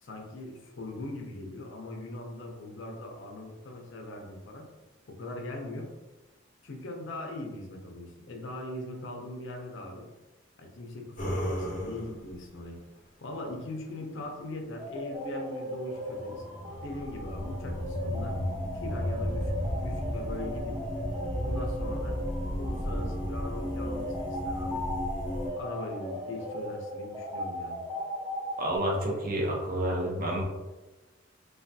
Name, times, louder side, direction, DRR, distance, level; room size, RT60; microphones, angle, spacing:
voice 1, 0.0-4.7 5.1-5.9 6.6-10.1 10.6-12.8 13.2-16.4 16.8-18.4 18.7-20.8 21.4-22.2 22.6-24.8 25.6-27.8, left 1 dB, 65° left, 2 dB, 0.5 m, -40 dB
sound 1, 11.2-12.3 16.1-25.5, equal, 40° left, 0.8 m, -34 dB
sound 2, 14.8-28.8, equal, 5° right, 0.8 m, -38 dB
voice 2, 28.6-30.4, right 1 dB, 45° right, 0 dB, 0.5 m, -29 dB
3.2 x 2.2 x 2.6 m, 1.1 s
head